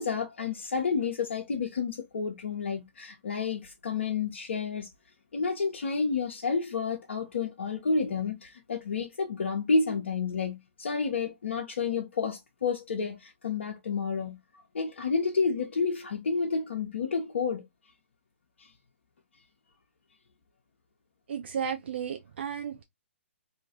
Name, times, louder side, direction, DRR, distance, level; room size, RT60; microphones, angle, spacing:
voice 1, 0.0-4.9 5.3-14.4 14.7-17.6 18.6-18.7, left 4 dB, 70° left, 0.5 m, -30 dB
voice 2, 21.3-22.8, right 7 dB, 60° right, 0.4 m, -33 dB
2.4 x 2.3 x 2.5 m
figure-of-eight pair, 125°, 7 cm